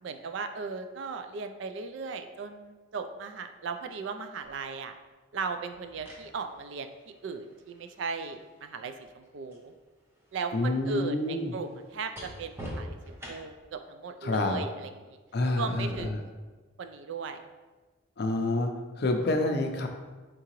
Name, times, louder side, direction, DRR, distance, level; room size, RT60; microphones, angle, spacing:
voice 1, 0.0-5.0 5.3-9.7 10.3-15.2 15.6-16.3 16.8-17.4, right 4 dB, 60° right, 8 dB, 0.3 m, -37 dB
sound 1, 4.4-4.6 5.7-9.7 10.0-13.7 15.8-16.0, equal, 10° right, 0.6 m, -46 dB
voice 2, 10.5-11.5 14.2-14.6 15.3-16.2 18.2-18.7 19.0-19.9, left 2 dB, 50° left, 4 dB, 0.5 m, -28 dB
4.6 x 3.7 x 2.9 m, 1.3 s
head